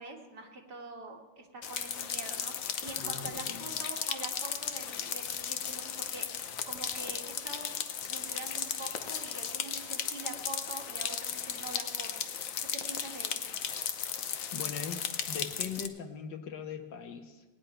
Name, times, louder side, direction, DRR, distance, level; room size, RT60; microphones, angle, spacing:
voice 1, 0.0-7.7 8.1-12.3 12.7-13.3, right 3 dB, 65° right, 0 dB, 2.3 m, -45 dB
sound 1, 1.6-15.9, left 8 dB, 60° left, 1.0 m, -36 dB
voice 2, 2.9-3.7 14.5-17.4, left 6 dB, 80° left, 6 dB, 1.7 m, -41 dB
18.5 x 10.0 x 4.4 m, 1.3 s
omnidirectional pair, 1.9 m